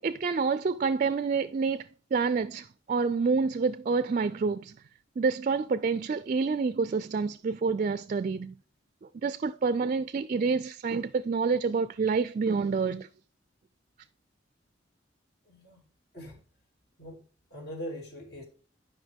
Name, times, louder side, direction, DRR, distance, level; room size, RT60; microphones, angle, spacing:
voice 1, 0.0-4.7 5.2-8.5 9.1-13.1, right 4 dB, 40° right, 0.3 m, -28 dB
voice 2, 15.4-15.8 16.1-16.4 17.0-17.2 17.5-18.4, equal, 60° left, 2.6 m, -41 dB
11.5 x 5.4 x 3.5 m
head